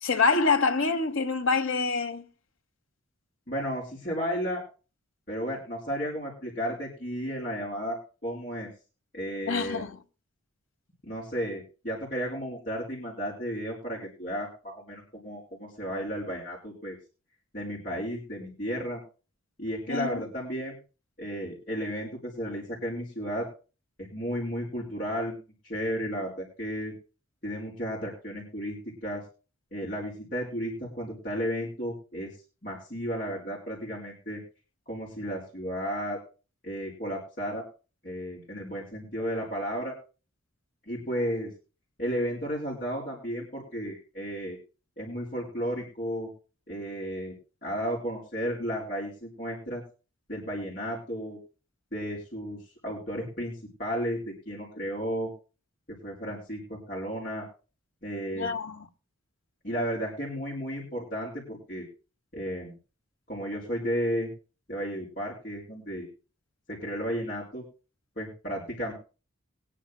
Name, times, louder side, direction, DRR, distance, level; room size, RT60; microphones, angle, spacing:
voice 1, 0.0-2.3 9.5-10.0 19.9-20.2 58.3-58.9, left 4 dB, 70° left, 1.2 m, -26 dB
voice 2, 3.5-4.6 5.3-8.7 9.1-9.8 11.0-17.0 17.5-19.0 19.6-20.7 21.2-23.5 24.0-26.9 27.4-28.8 29.0-29.2 29.7-32.3 32.6-34.4 34.9-36.2 36.6-37.6 38.0-39.9 40.9-41.5 42.0-44.6 45.0-46.3 46.7-47.3 47.6-49.8 50.3-51.4 51.9-53.5 53.8-55.3 56.0-57.5 58.0-58.5 59.6-61.9 62.3-62.7 63.3-64.3 64.7-66.1 66.7-67.6 68.2-68.9, equal, 40° left, 4.4 m, -33 dB
22.5 x 10.0 x 2.2 m
head